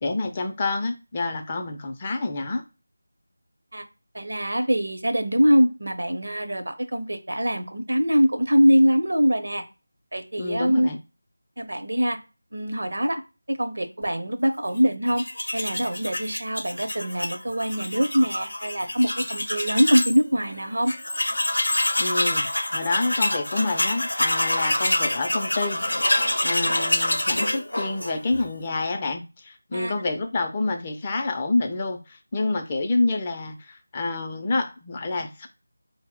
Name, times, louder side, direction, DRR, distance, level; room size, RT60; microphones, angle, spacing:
voice 1, 0.0-2.6 10.4-11.0 22.0-25.8 26.4-35.5, left 3 dB, 25° left, 4 dB, 0.4 m, -28 dB
voice 2, 4.1-9.6 10.1-10.9 11.6-12.2 12.5-13.2 13.5-15.2 15.5-20.9 29.7-29.9, equal, 65° right, 7 dB, 0.7 m, -23 dB
Tools, 15.1-20.2 20.5-20.6 20.9-28.5, left 1 dB, 75° left, 0.6 m, -26 dB
4.2 x 2.0 x 3.5 m, 0.30 s
figure-of-eight pair, 165°, 0 cm